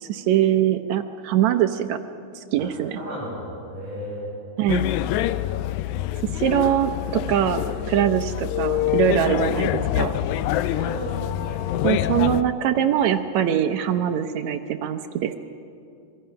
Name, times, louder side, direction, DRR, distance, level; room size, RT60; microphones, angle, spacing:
voice 1, 0.0-2.0 2.5-3.0 4.6-4.9 6.4-10.1 11.8-15.4, right 10 dB, 75° right, 7 dB, 1.8 m, -22 dB
voice 2, 2.6-4.3 10.2-10.4 10.7-11.6, equal, 10° right, -9 dB, 6.3 m, -35 dB
sound 1, 4.7-12.4, left 13 dB, 80° left, 1.8 m, -25 dB
25.5 x 22.0 x 5.7 m, 2.5 s
omnidirectional pair, 3.8 m